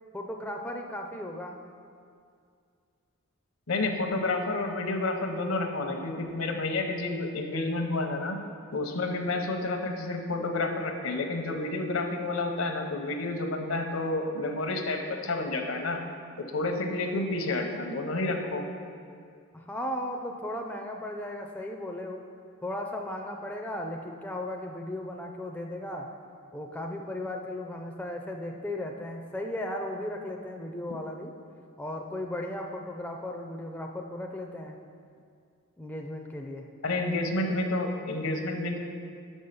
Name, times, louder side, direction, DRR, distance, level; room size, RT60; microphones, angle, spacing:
voice 1, 0.1-1.6 19.5-22.2 22.6-26.1 26.5-31.3 31.8-34.8 35.8-36.7, left 1 dB, 5° left, 1 dB, 0.4 m, -36 dB
voice 2, 3.7-8.4 8.7-16.0 16.4-18.6 36.8-38.8, left 2 dB, 75° left, 4 dB, 0.8 m, -30 dB
6.3 x 5.4 x 6.6 m, 2.3 s
head